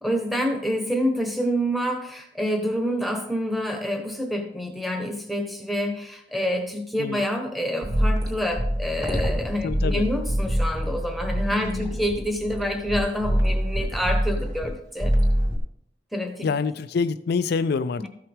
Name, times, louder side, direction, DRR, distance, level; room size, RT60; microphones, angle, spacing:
voice 1, 0.0-15.1 16.1-16.5, equal, ahead, 3 dB, 1.2 m, -27 dB
sound 1, 7.8-14.7 15.0-15.6, equal, 20° right, 2.2 m, -25 dB
voice 2, 9.6-10.1 11.5-12.0 16.4-18.1, left 5 dB, 60° left, 11 dB, 0.4 m, -26 dB
13.5 x 5.6 x 3.6 m, 0.72 s
head